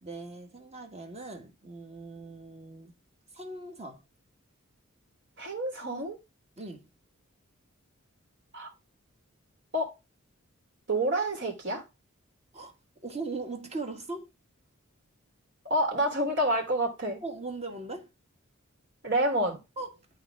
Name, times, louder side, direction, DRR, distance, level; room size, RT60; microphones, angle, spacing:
voice 1, 0.0-3.0 3.3-4.0 6.6-6.9 12.5-12.8 13.0-14.3 17.2-18.1 19.8-19.9, right 3 dB, 30° right, 1.9 m, -39 dB
voice 2, 5.4-6.2 8.5-8.7 9.7-9.9 10.9-11.8 15.7-17.2 19.0-19.6, right 1 dB, 55° right, 3.5 m, -28 dB
12.5 x 4.2 x 3.6 m
head